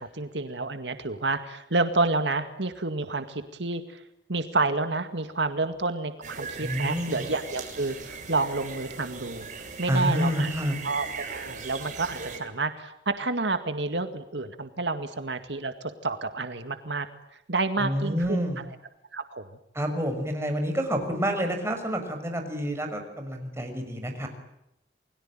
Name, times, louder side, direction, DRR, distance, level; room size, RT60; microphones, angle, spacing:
voice 1, 0.0-4.0 4.3-9.5 9.8-10.5 10.8-17.1 17.5-18.4 19.1-19.4, right 3 dB, 75° right, 9 dB, 2.1 m, -29 dB
sound 1, 6.2-12.4, right 5 dB, 45° right, 7.4 m, -39 dB
voice 2, 6.6-7.2 9.9-10.7 17.8-18.6 19.7-24.3, equal, 15° right, 4 dB, 6.6 m, -28 dB
30.0 x 22.0 x 9.0 m, 0.85 s
head